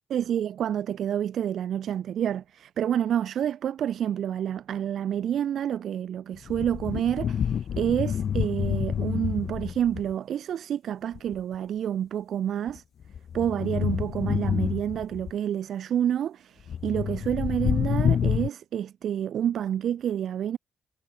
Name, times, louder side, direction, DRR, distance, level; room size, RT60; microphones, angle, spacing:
voice 1, 0.1-12.8 13.3-20.6, right 10 dB, 65° right, 1.8 m, -28 dB
sound 1, 6.4-10.1 11.1-11.4 12.7-15.3 16.7-18.5, left 8 dB, 60° left, 1.1 m, -28 dB
cardioid pair, 90°, 0 cm